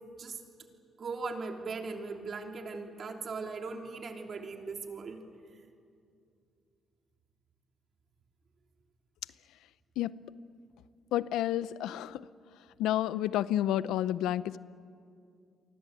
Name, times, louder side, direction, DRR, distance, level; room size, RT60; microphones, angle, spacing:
voice 1, 1.0-5.2, right 4 dB, 50° right, 3 dB, 3.1 m, -39 dB
voice 2, 11.1-12.2 12.8-14.6, left 12 dB, 90° left, 16 dB, 0.6 m, -30 dB
29.0 x 24.0 x 8.2 m, 2.4 s
cardioid pair, 90°, 0 cm